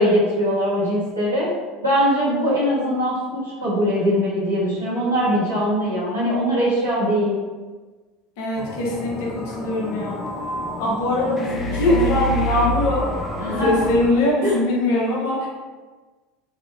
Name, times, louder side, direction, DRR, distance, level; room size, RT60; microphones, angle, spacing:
voice 1, 0.0-1.5 1.8-7.4 13.4-13.7 14.4-14.6, equal, 90° right, -12 dB, 1.4 m, -21 dB
voice 2, 8.4-10.2 10.8-13.1 13.4-15.5, left 1 dB, 55° left, -3 dB, 0.8 m, -22 dB
sound 1, 8.6-14.1, equal, 25° left, 0.4 m, -28 dB
3.3 x 2.8 x 2.3 m, 1.3 s
figure-of-eight pair, 70°, 0 cm